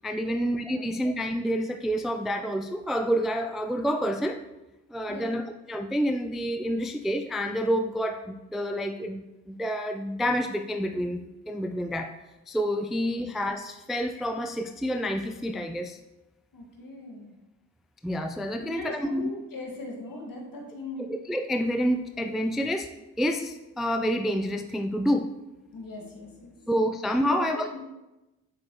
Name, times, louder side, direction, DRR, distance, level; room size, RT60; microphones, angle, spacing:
voice 1, 0.0-4.4 4.9-5.4 5.7-12.1 12.5-16.0 18.0-19.3 21.0-22.9 23.2-25.3 26.7-27.6, equal, ahead, 6 dB, 0.4 m, -28 dB
voice 2, 5.1-5.5 13.1-13.3 16.5-17.3 18.6-21.1 25.7-26.7 27.2-27.8, left 2 dB, 50° left, 0 dB, 2.1 m, -39 dB
7.5 x 6.0 x 3.2 m, 1.0 s
hypercardioid pair, 40°, 42 cm